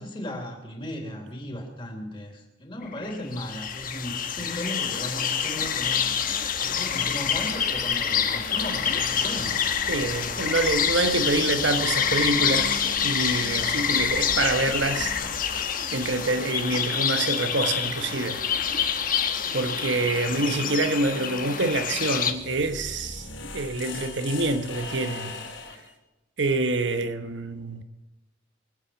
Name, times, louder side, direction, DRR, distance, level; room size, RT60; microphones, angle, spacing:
voice 1, 0.0-6.3 6.6-9.6, equal, 25° left, 3.3 m, -36 dB
sound 1, 2.8-22.3, left 7 dB, 45° left, 1.2 m, -27 dB
voice 2, 9.9-15.1 15.4-15.6 15.9-18.4 18.8-19.1 19.5-23.3 23.5-25.4 26.4-27.8, right 2 dB, 65° right, 1.1 m, -26 dB
sound 2, 22.1-25.9, left 3 dB, 75° left, 3.5 m, -39 dB
23.5 x 8.6 x 7.1 m
head